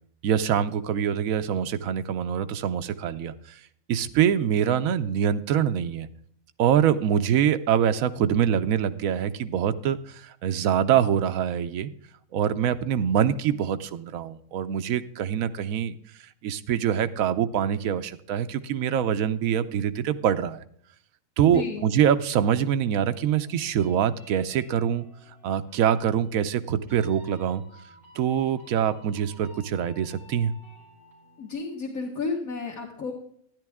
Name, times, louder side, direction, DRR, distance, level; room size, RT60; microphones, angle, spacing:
voice 1, 0.2-3.6 3.9-6.1 6.6-11.9 12.3-15.9 16.4-20.6 21.4-25.1 25.4-27.6 28.1-30.5, right 9 dB, 80° right, 10 dB, 1.0 m, -24 dB
voice 2, 21.4-21.9 31.4-33.1, left 4 dB, 85° left, -2 dB, 1.8 m, -32 dB
sound 1, 23.0-31.5, left 1 dB, ahead, 4.3 m, -54 dB
12.0 x 10.0 x 3.5 m, 0.65 s
omnidirectional pair, 1.4 m